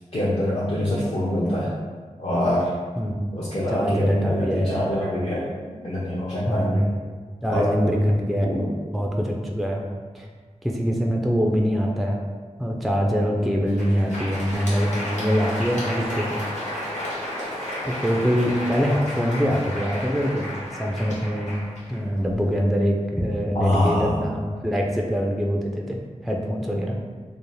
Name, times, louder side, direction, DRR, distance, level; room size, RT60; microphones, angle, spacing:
voice 1, 0.1-1.7 2.2-2.7 3.3-6.8 7.5-7.7 8.4-8.7 23.5-24.3, left 1 dB, 50° left, -9 dB, 0.6 m, -25 dB
voice 2, 3.0-3.3 3.7-4.9 6.5-6.9 7.4-8.5 8.9-9.8 10.1-10.3 10.6-12.2 12.6-16.4 17.8-21.6 21.9-27.0, equal, ahead, 0 dB, 0.3 m, -24 dB
Crowd, 13.5-22.5, left 1 dB, 70° left, 0.9 m, -32 dB
2.6 x 2.0 x 3.0 m, 1.5 s
cardioid pair, 40°, 13 cm